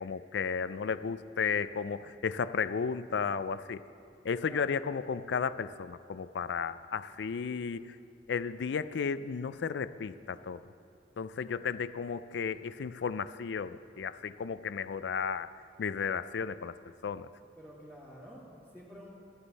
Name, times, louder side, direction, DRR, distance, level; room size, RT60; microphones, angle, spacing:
voice 1, 0.0-3.8 4.2-8.0 8.3-10.6 11.2-15.5 15.8-16.7 17.0-17.3, left 6 dB, 70° left, 15 dB, 0.4 m, -34 dB
voice 2, 4.4-4.8 17.6-19.1, equal, 10° right, -10 dB, 2.0 m, -50 dB
15.0 x 11.0 x 4.1 m, 2.4 s
head